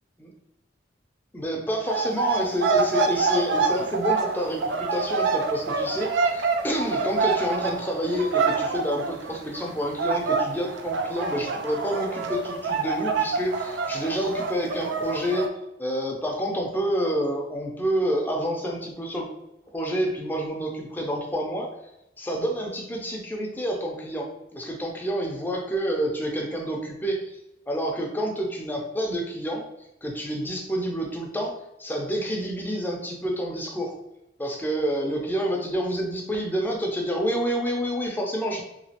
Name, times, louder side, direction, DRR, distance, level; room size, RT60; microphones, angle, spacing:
voice 1, 1.3-15.5 15.8-19.3 19.7-21.7 22.2-27.4 27.7-29.7 30.0-34.0 34.4-38.6, equal, 10° left, 0 dB, 0.5 m, -28 dB
sound 1, 1.9-9.7 10.0-15.5, right 4 dB, 75° right, 0.4 m, -26 dB
3.0 x 2.4 x 2.8 m, 0.87 s
head